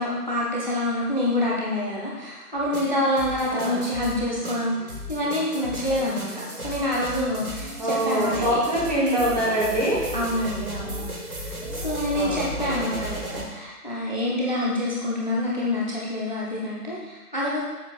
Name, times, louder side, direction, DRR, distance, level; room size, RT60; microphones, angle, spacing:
voice 1, 0.0-8.6 10.1-11.0 11.3-17.6, left 1 dB, 30° left, -5 dB, 0.7 m, -27 dB
sound 1, 2.5-13.5, right 1 dB, 65° right, 1.3 m, -35 dB
voice 2, 7.8-10.0 12.1-12.9, right 1 dB, 25° right, -6 dB, 1.3 m, -24 dB
7.2 x 5.6 x 2.3 m, 1.2 s
figure-of-eight pair, 155°, 47 cm